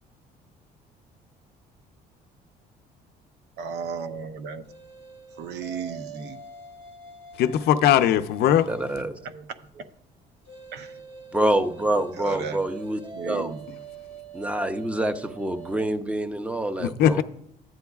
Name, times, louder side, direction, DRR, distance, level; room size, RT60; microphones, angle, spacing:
voice 1, 3.6-4.7 5.4-6.4 9.2-9.9 10.7-11.0 12.1-12.6 13.1-13.8, right 6 dB, 80° right, 0.7 m, -35 dB
sound 1, 4.7-9.0 10.5-15.9, right 4 dB, 30° right, 1.3 m, -44 dB
voice 2, 7.4-8.7 16.8-17.2, left 10 dB, 75° left, 0.5 m, -20 dB
voice 3, 8.7-9.2 11.3-13.5 14.3-17.2, right 1 dB, 5° right, 0.6 m, -26 dB
13.0 x 9.0 x 2.3 m
cardioid pair, 110°, 17 cm